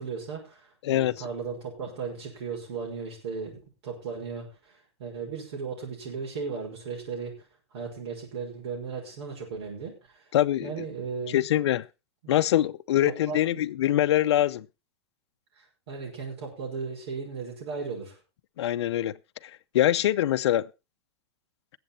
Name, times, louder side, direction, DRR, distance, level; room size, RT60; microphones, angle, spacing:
voice 1, 0.0-7.3 7.7-10.3 10.6-11.4 12.2-12.3 13.1-13.6 15.5-18.2, right 5 dB, 70° right, 5.8 m, -36 dB
voice 2, 0.8-1.1 10.3-10.8 11.3-11.8 12.3-14.6 18.6-19.1 19.4-20.7, left 12 dB, 75° left, 0.6 m, -24 dB
19.5 x 7.8 x 4.2 m
supercardioid pair, 150°, 14 cm